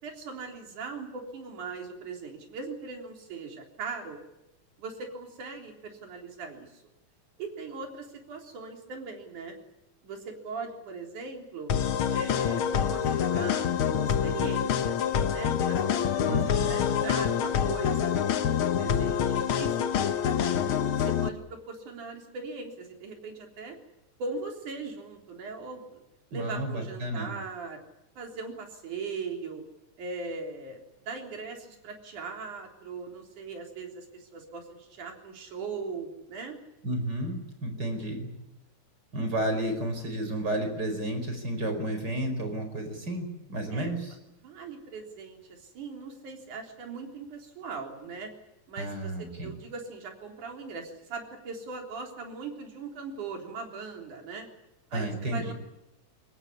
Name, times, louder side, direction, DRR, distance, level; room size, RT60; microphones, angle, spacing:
voice 1, 0.0-4.2 4.8-6.8 7.4-9.6 10.0-11.7 12.1-13.7 14.0-15.0 15.3-18.2 18.8-19.2 19.5-20.1 20.9-23.8 24.2-26.0 26.3-27.8 28.2-29.6 30.0-30.8 31.1-36.6 43.7-44.0 44.4-48.3 48.7-54.5 54.9-55.5, right 4 dB, 65° right, 2 dB, 5.0 m, -39 dB
sound 1, 11.7-21.3, left 8 dB, 65° left, 1.3 m, -26 dB
voice 2, 16.3-17.0 26.3-27.3 36.8-38.3 39.1-44.1 48.8-49.5 54.9-55.5, right 1 dB, 30° right, 6 dB, 5.2 m, -32 dB
24.0 x 18.5 x 9.9 m, 0.94 s
omnidirectional pair, 3.9 m